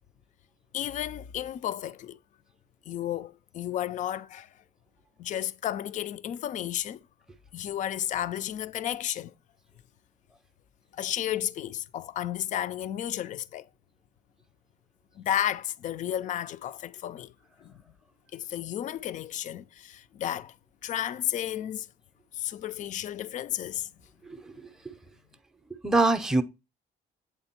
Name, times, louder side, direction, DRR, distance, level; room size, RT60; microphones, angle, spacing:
voice 1, 0.7-2.2 2.9-4.5 5.2-7.0 7.5-9.3 10.9-13.7 15.2-17.3 17.6-17.7 18.3-20.6 20.8-21.9 22.3-23.9, left 11 dB, 45° left, 0.4 m, -32 dB
voice 2, 24.2-24.9 25.8-26.4, right 2 dB, 5° right, 0.6 m, -25 dB
8.2 x 3.4 x 4.3 m
cardioid pair, 110°, 17 cm